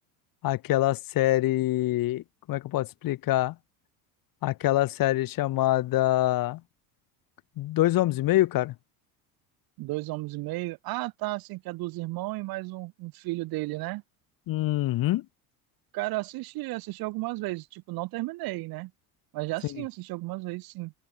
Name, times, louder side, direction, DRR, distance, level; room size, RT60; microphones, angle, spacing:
voice 1, 0.4-3.5 4.4-6.6 7.6-8.7 14.5-15.2, left 16 dB, 50° left, 1.1 m, -25 dB
voice 2, 9.8-14.0 15.9-18.9 19.3-20.9, right 21 dB, 55° right, 0.7 m, -33 dB
open air
hypercardioid pair, 80°, 43 cm